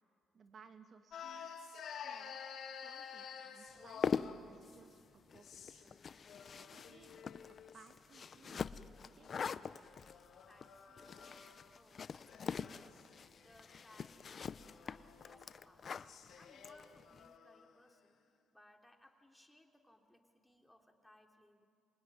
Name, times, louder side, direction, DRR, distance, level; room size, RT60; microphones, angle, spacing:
voice 1, 0.3-2.4 2.8-5.0 5.3-6.0 6.6-9.3, right 5 dB, 50° right, 6 dB, 2.0 m, -62 dB
sound 1, 1.1-4.5 5.3-5.9 6.3-7.9 9.0-11.7 12.1-17.7, left 7 dB, 65° left, 2.7 m, -52 dB
sound 2, 3.8-17.3, left 6 dB, 45° left, 0.7 m, -43 dB
voice 2, 10.5-11.3 11.7-15.9 16.3-18.2 18.5-21.7, left 1 dB, 5° left, 3 dB, 3.0 m, -65 dB
26.0 x 22.5 x 9.6 m, 2.4 s
cardioid pair, 90°, 0 cm